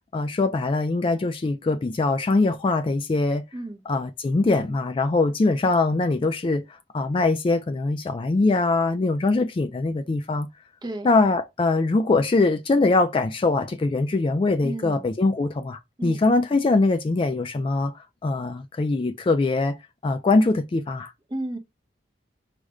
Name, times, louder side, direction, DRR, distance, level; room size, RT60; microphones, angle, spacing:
voice 1, 0.1-3.4 3.9-6.6 6.9-10.5 11.0-17.9 18.2-19.8 20.0-21.1, left 3 dB, 30° left, 0.3 m, -22 dB
voice 2, 14.6-15.0 16.0-16.2 21.3-21.6, right 1 dB, 25° right, 0.8 m, -32 dB
4.9 x 2.1 x 4.8 m
head